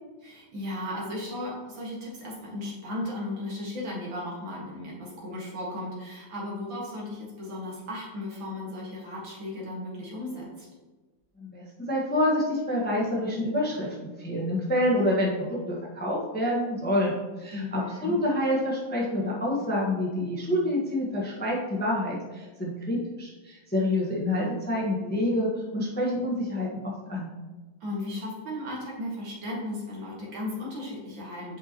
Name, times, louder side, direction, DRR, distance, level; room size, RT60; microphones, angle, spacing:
voice 1, 0.2-10.7 17.5-18.2 27.8-31.6, left 1 dB, 70° right, -4 dB, 2.5 m, -35 dB
voice 2, 11.4-27.3, left 1 dB, 5° left, -4 dB, 0.9 m, -27 dB
8.0 x 5.6 x 2.9 m, 1.2 s
omnidirectional pair, 2.1 m